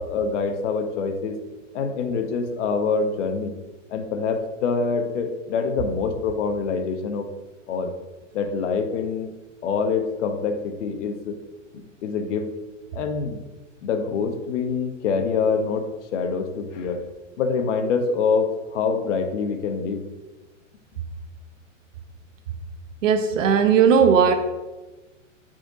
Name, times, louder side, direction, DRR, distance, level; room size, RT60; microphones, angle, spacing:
voice 1, 0.0-1.4 1.7-3.5 3.9-7.3 7.7-7.9 8.3-9.3 9.6-11.4 11.7-12.5 12.9-13.4 13.8-17.0 17.4-20.0, left 5 dB, 65° left, 7 dB, 1.0 m, -25 dB
voice 2, 23.0-24.3, right 7 dB, 75° right, 7 dB, 0.9 m, -17 dB
5.0 x 4.4 x 4.9 m, 1.2 s
hypercardioid pair, 130°, 39 cm